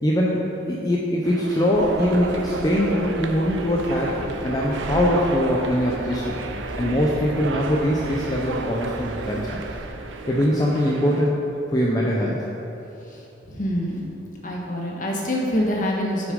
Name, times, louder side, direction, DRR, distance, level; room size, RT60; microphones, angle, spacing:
voice 1, 0.0-6.4 6.8-9.6 10.3-11.4 11.7-12.4, equal, 20° left, -4 dB, 0.6 m, -22 dB
sound 1, 1.2-11.4, right 3 dB, 80° right, 0.5 m, -32 dB
sound 2, 1.7-9.9, equal, 60° right, 1.1 m, -39 dB
voice 2, 13.1-14.1 14.4-16.3, equal, 45° left, -1 dB, 1.2 m, -26 dB
7.3 x 6.1 x 5.2 m, 3.0 s
head